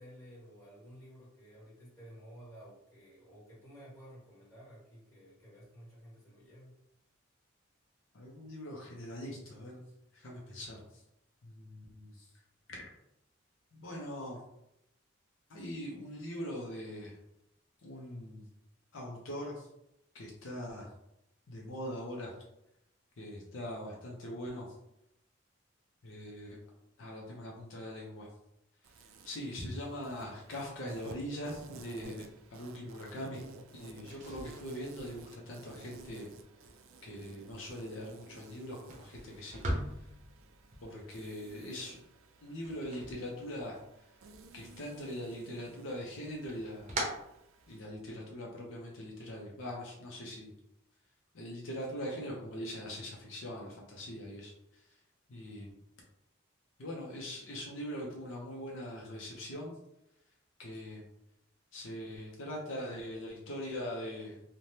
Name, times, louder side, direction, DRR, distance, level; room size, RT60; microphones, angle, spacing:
voice 1, 0.0-6.8, equal, 15° left, -9 dB, 1.4 m, -53 dB
voice 2, 8.1-9.8 10.1-11.0 11.4-12.3 12.7-12.8 13.7-14.4 15.5-17.2 17.8-18.5 18.9-19.7 20.1-20.9 21.5-22.4 23.2-24.7 26.0-26.6 27.0-28.3 29.2-32.2 32.5-33.4 33.7-36.3 37.0-39.6 40.8-42.0 42.4-43.8 44.5-47.0 47.7-50.5 51.3-54.9 55.3-55.8 56.8-59.7 60.6-61.0 61.7-64.4, equal, 70° left, -2 dB, 0.6 m, -42 dB
Insect, 28.8-47.8, right 3 dB, 80° right, 0.4 m, -54 dB
sound 1, 34.1-44.0 44.3-45.1 45.5-48.1, right 1 dB, 35° right, 0.6 m, -43 dB
3.2 x 2.1 x 2.7 m, 0.82 s
head